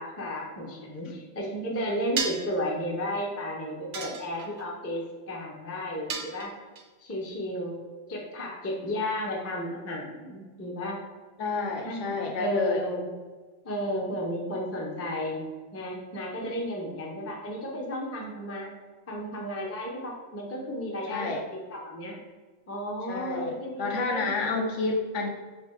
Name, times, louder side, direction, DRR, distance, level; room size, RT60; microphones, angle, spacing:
voice 1, 0.0-6.5 7.0-7.8 8.1-11.0 11.8-13.1 13.6-15.5 15.7-18.7 19.1-22.2 22.7-24.6, equal, 25° left, -2 dB, 0.3 m, -33 dB
sound 1, 2.2-2.6 3.9-4.7 6.1-6.8, right 5 dB, 80° right, 1.0 m, -33 dB
voice 2, 11.4-12.9 21.1-21.4 23.1-25.3, left 3 dB, 70° left, 2 dB, 0.8 m, -30 dB
3.3 x 3.1 x 4.4 m, 1.3 s
omnidirectional pair, 1.4 m